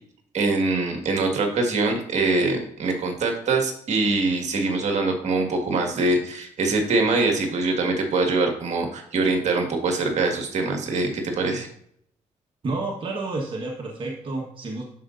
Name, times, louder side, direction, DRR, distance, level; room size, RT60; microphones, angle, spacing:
voice 1, 0.3-11.7, right 3 dB, 65° right, 3 dB, 1.8 m, -23 dB
voice 2, 12.6-14.8, right 2 dB, 40° right, -1 dB, 1.4 m, -30 dB
12.5 x 5.0 x 2.6 m, 0.67 s
cardioid pair, 85°, 13 cm